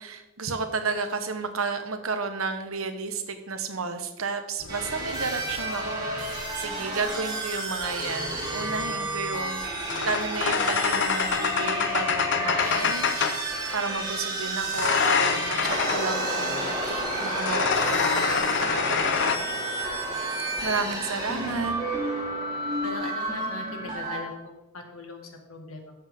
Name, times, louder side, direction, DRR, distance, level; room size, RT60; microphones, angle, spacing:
voice 1, 0.0-9.6 10.0-16.7 17.1-19.5 20.6-21.7, right 4 dB, 80° right, 7 dB, 1.2 m, -32 dB
sound 1, 4.6-6.7 7.9-13.5 14.6-16.1 17.2-19.4, left 6 dB, 55° left, 0.8 m, -27 dB
sound 2, 4.7-24.2, right 2 dB, 20° right, 2.4 m, -31 dB
sound 3, 15.6-23.0, left 1 dB, 25° left, 3.7 m, -35 dB
voice 2, 22.8-25.2 25.5-25.9, left 2 dB, 80° left, 3 dB, 1.9 m, -39 dB
13.0 x 7.4 x 3.7 m, 1.0 s
head